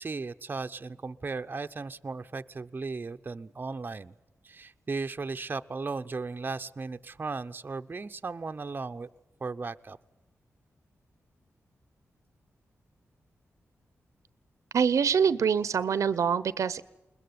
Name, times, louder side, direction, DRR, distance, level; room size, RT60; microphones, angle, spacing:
voice 1, 0.0-4.1 4.4-9.1 9.4-10.0, right 4 dB, 35° right, 7 dB, 0.8 m, -36 dB
voice 2, 14.7-16.8, right 7 dB, 75° right, 17 dB, 0.8 m, -25 dB
21.5 x 21.0 x 9.5 m, 0.92 s
cardioid pair, 80°, 5 cm